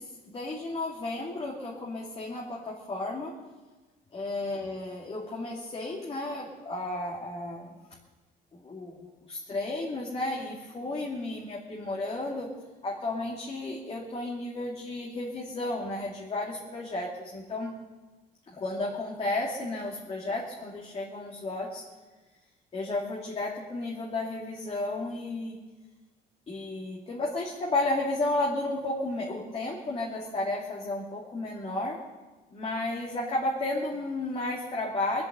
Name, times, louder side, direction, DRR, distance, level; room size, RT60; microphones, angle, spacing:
voice 1, 0.0-3.4 4.1-7.7 8.5-12.5 12.8-17.7 18.5-21.8 22.7-25.6 26.5-32.0 32.5-35.2, left 2 dB, 35° left, -3 dB, 2.7 m, -33 dB
21.0 x 7.9 x 8.3 m, 1.3 s
cardioid pair, 110°, 17 cm